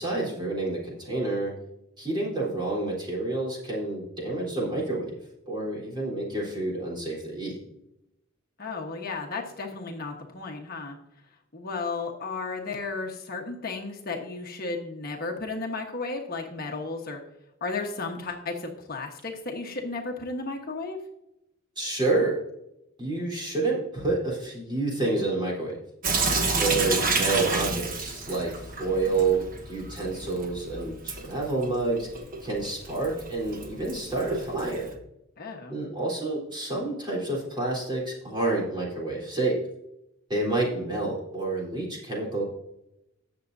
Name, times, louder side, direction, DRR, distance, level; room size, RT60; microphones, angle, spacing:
voice 1, 0.0-1.5 2.0-5.2 5.5-7.6 21.8-22.4 23.0-25.8 26.5-34.9 35.7-39.6 40.3-42.4, right 2 dB, 20° right, -4 dB, 3.7 m, -29 dB
voice 2, 8.6-11.0 11.5-17.2 17.6-21.0 35.4-35.8, left 3 dB, 45° left, 1 dB, 1.2 m, -34 dB
Sink (filling or washing) / Drip, 26.0-34.9, right 3 dB, 40° right, 1.3 m, -30 dB
18.0 x 7.0 x 2.7 m, 0.86 s
head